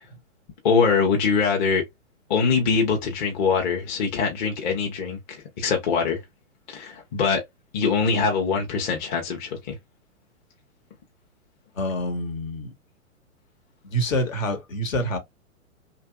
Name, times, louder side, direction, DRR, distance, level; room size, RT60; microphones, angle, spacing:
voice 1, 0.6-1.8 2.3-6.2 6.7-7.4 7.7-9.8, left 5 dB, 35° left, 0.8 m, -23 dB
voice 2, 11.7-12.7 13.8-15.2, equal, 75° left, 1.3 m, -26 dB
3.0 x 2.5 x 2.2 m
hypercardioid pair, 120°, 41 cm